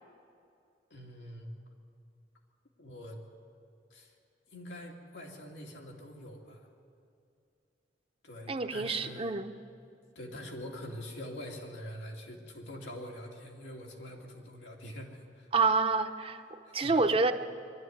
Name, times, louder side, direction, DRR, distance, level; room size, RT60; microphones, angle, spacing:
voice 1, 0.9-1.5 2.8-3.2 3.9-4.1 4.5-6.7 8.2-9.3 10.1-15.5 16.7-17.0, equal, 90° left, 0 dB, 2.7 m, -44 dB
voice 2, 8.5-9.5 15.5-17.3, right 3 dB, 30° right, 7 dB, 0.7 m, -28 dB
22.5 x 12.5 x 9.4 m, 2.5 s
head